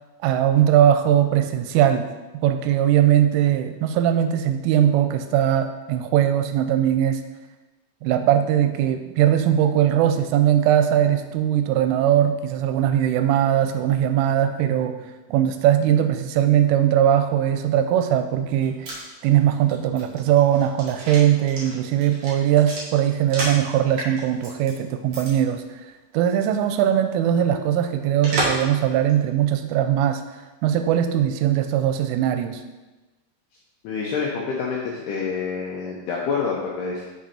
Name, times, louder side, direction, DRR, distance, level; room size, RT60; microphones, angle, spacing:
voice 1, 0.2-2.1 2.4-7.2 8.0-15.0 15.3-18.9 19.2-25.8 26.1-30.2 30.6-32.6, right 10 dB, 90° right, 8 dB, 3.1 m, -20 dB
sound 1, 18.4-23.7 24.0-24.7 25.1-25.3 25.6-25.7 28.2-28.7 29.1-29.2, right 1 dB, 60° right, 1.4 m, -31 dB
voice 2, 33.8-37.1, left 5 dB, 80° left, -3 dB, 2.4 m, -27 dB
6.4 x 6.1 x 4.2 m, 1.1 s
omnidirectional pair, 5.6 m